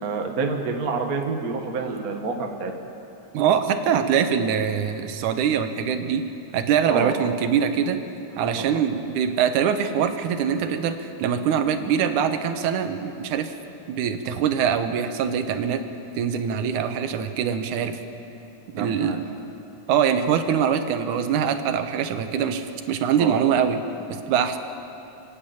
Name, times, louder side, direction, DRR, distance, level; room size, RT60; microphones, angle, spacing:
voice 1, 0.0-2.7 6.9-7.3 8.4-8.5 18.7-19.2 23.2-23.6, right 4 dB, 45° right, 3 dB, 1.2 m, -28 dB
voice 2, 3.3-6.2 6.5-8.0 8.4-13.5 13.9-15.8 16.2-18.0 18.7-19.2 19.9-23.8 24.1-24.6, right 8 dB, 80° right, 8 dB, 2.5 m, -23 dB
30.0 x 10.0 x 8.8 m, 2.8 s
omnidirectional pair, 3.5 m